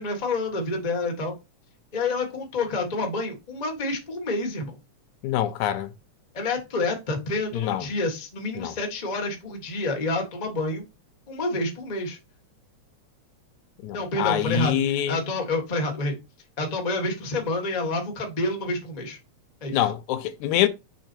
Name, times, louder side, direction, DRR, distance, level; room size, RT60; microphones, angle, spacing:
voice 1, 0.0-1.3 1.9-4.7 6.3-10.8 11.3-12.2 13.9-16.2 16.6-19.2 19.6-19.8, left 2 dB, 30° left, 0.7 m, -28 dB
voice 2, 5.2-5.9 7.5-7.9 8.6-8.7 13.8-15.2 19.7-20.7, left 12 dB, 80° left, 2.1 m, -25 dB
6.2 x 3.8 x 4.4 m
omnidirectional pair, 3.4 m